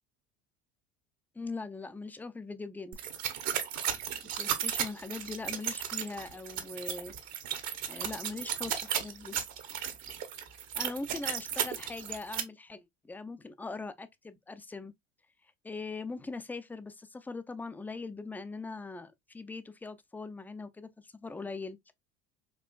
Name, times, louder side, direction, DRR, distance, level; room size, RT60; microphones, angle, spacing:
voice 1, 1.4-3.0 4.3-7.1 7.9-9.4 10.7-14.9 15.4-21.8, left 3 dB, 5° left, 0.3 m, -41 dB
sound 1, 2.9-12.4, right 9 dB, 55° right, 0.9 m, -35 dB
4.4 x 2.4 x 2.2 m
hypercardioid pair, 80°, 32 cm